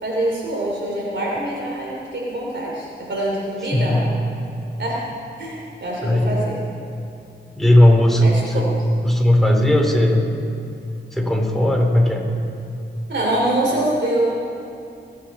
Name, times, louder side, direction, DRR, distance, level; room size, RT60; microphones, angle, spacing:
voice 1, 0.0-4.0 4.8-5.0 5.4-6.6 8.2-8.7 13.1-14.3, right 1 dB, 70° right, -3 dB, 3.4 m, -24 dB
voice 2, 3.7-4.1 6.0-6.3 7.5-8.7 9.0-10.3 11.1-12.2, left 1 dB, ahead, 0 dB, 3.4 m, -16 dB
26.5 x 9.4 x 4.3 m, 2.6 s
cardioid pair, 50°, 19 cm